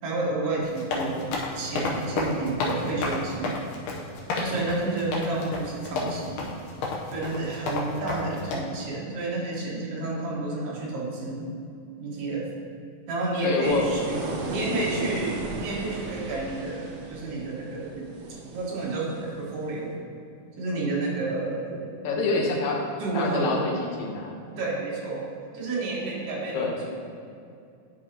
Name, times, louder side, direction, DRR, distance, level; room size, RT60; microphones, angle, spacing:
voice 1, 0.0-3.6 4.4-6.7 7.1-11.5 12.0-12.5 13.1-17.9 18.5-19.9 20.6-21.8 23.0-23.7 24.6-25.2 25.5-27.0, right 2 dB, 55° right, -5 dB, 2.3 m, -30 dB
sound 1, 0.6-8.6, left 3 dB, 85° left, 2.5 m, -31 dB
voice 2, 13.4-13.9 14.6-15.2 22.0-22.8 23.1-23.7 24.0-24.4 26.5-26.8, left 4 dB, 70° left, 0 dB, 2.1 m, -27 dB
sound 2, 13.6-19.7, right 3 dB, 75° right, 1.3 m, -36 dB
10.5 x 5.4 x 2.9 m, 2.5 s
omnidirectional pair, 3.6 m